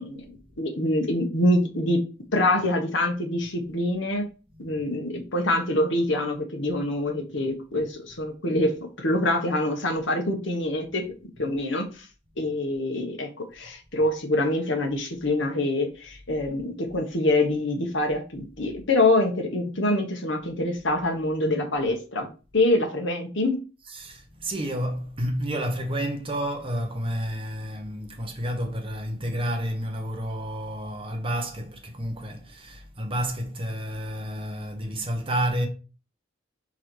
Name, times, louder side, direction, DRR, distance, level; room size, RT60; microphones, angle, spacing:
voice 1, 0.0-2.0 2.3-4.2 4.6-8.7 9.0-11.1 11.4-12.1 12.4-22.3 22.5-23.6, left 1 dB, 65° left, 1.5 m, -25 dB
voice 2, 23.8-35.7, equal, 30° right, 1.2 m, -30 dB
4.9 x 4.2 x 4.6 m
head